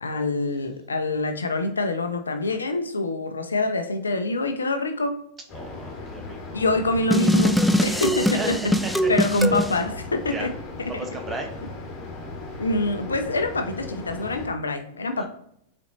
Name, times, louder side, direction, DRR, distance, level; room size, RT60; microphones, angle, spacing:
voice 1, 0.0-5.2 6.5-8.6 9.1-10.5 10.8-10.9 12.6-15.3, left 2 dB, 90° left, 6 dB, 0.5 m, -25 dB
sound 1, 5.5-14.5, left 3 dB, 35° left, 1.4 m, -37 dB
voice 2, 5.5-6.6 8.3-9.6 10.3-10.5 10.9-11.5 15.2-15.3, right 2 dB, 20° right, 3 dB, 1.0 m, -35 dB
sound 2, 7.1-9.7, equal, ahead, 0.3 m, -22 dB
4.1 x 4.1 x 2.7 m, 0.71 s
hypercardioid pair, 100°, 0 cm